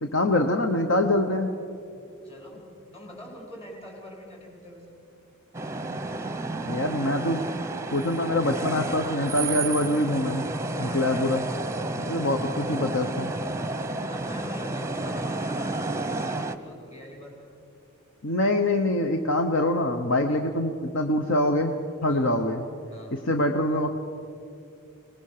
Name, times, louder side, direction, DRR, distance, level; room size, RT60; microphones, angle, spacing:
voice 1, 0.0-1.5 6.7-7.4 7.9-10.5 10.8-11.5 11.9-13.3 18.2-22.6 23.1-23.9, left 1 dB, 60° left, 5 dB, 1.0 m, -24 dB
voice 2, 1.9-2.6 2.9-4.9 13.7-17.5 20.2-20.4 22.1-22.3 22.9-23.2, equal, 30° left, -1 dB, 4.8 m, -45 dB
sound 1, 5.5-16.6, right 2 dB, 15° right, 0.9 m, -31 dB
24.5 x 19.5 x 6.7 m, 2.7 s
head